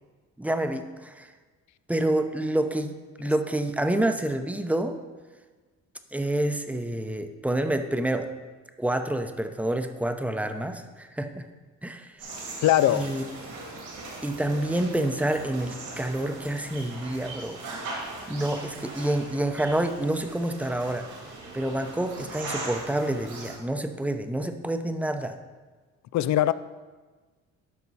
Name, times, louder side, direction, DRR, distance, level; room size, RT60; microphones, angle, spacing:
voice 1, 0.4-1.3 1.9-4.9 6.1-8.3 8.8-11.5 11.8-12.1 12.9-13.2 14.2-17.6 18.3-21.1 21.5-25.4, right 1 dB, 5° right, 0.7 m, -28 dB
sound 1, 12.2-23.6, right 2 dB, 75° right, 2.8 m, -40 dB
voice 2, 12.6-13.1 26.1-26.5, left 13 dB, 65° left, 0.5 m, -21 dB
12.5 x 5.4 x 4.1 m
cardioid pair, 90°, 30 cm